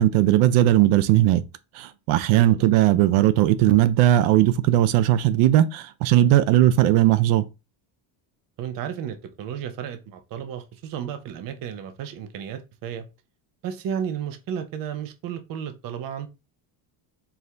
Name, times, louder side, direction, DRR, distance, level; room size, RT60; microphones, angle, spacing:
voice 1, 0.0-1.4 1.7-7.4, right 13 dB, 90° right, 0.6 m, -18 dB
voice 2, 2.3-2.7 8.6-13.1 13.6-16.3, right 8 dB, 45° right, 0.6 m, -33 dB
4.6 x 2.6 x 3.3 m
cardioid pair, 170°, 50 cm